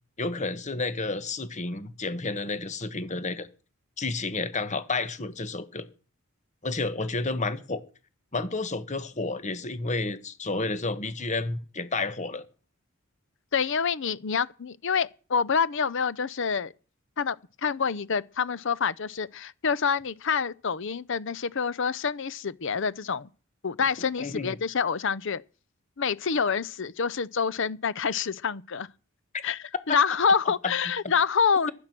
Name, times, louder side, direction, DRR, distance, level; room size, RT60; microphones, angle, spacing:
voice 1, 0.2-3.5 4.0-5.9 6.6-7.8 8.3-12.4 24.2-24.6 30.6-30.7, left 3 dB, 35° left, 1.3 m, -31 dB
voice 2, 13.5-16.7 17.2-17.4 17.6-23.3 23.6-25.4 26.0-28.9 29.4-31.7, left 6 dB, 60° left, 0.7 m, -27 dB
16.0 x 11.5 x 6.0 m
head